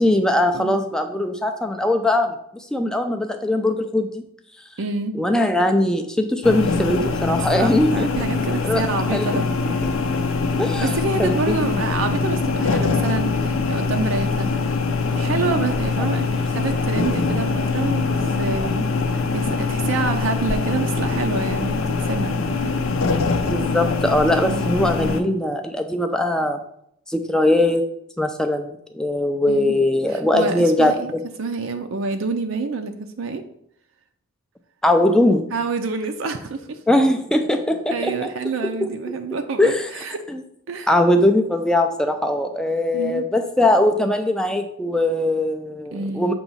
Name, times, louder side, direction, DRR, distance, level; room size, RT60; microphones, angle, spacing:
voice 1, 0.0-4.2 5.1-8.1 8.6-8.8 9.1-9.4 10.6-10.9 11.2-11.8 23.5-26.6 27.1-27.8 28.2-31.2 34.8-35.5 36.9-38.1 39.6-39.9 40.3-40.4 40.9-46.3, left 1 dB, 5° left, 5 dB, 0.4 m, -20 dB
voice 2, 4.8-5.1 7.6-9.5 10.8-14.5 15.1-18.9 19.3-22.9 24.4-24.7 29.5-29.7 30.1-31.1 31.4-33.4 35.5-36.8 37.9-40.2 40.7-40.9 42.9-43.2 45.9-46.3, right 4 dB, 65° right, 6 dB, 0.5 m, -27 dB
sound 1, 6.4-25.2, left 4 dB, 65° left, 0.6 m, -23 dB
Wind instrument woodwind instrument, 8.8-13.5, left 6 dB, 20° left, 0.9 m, -40 dB
7.0 x 3.0 x 5.5 m, 0.72 s
head